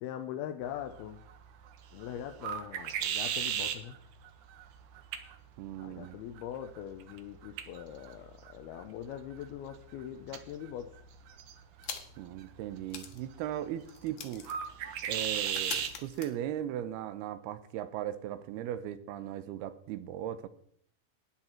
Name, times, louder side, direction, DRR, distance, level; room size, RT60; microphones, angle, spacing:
voice 1, 0.0-1.2 1.9-4.0 5.8-10.9, left 10 dB, 90° left, 6 dB, 2.7 m, -42 dB
sound 1, 0.6-16.0, right 9 dB, 70° right, 2.2 m, -40 dB
voice 2, 5.6-6.2 12.2-14.5 15.0-20.5, right 11 dB, 85° right, 13 dB, 2.8 m, -38 dB
sound 2, 11.8-12.3 12.6-12.7 12.9-17.0, left 7 dB, 60° left, 2.4 m, -45 dB
13.0 x 9.8 x 4.5 m, 0.66 s
omnidirectional pair, 4.4 m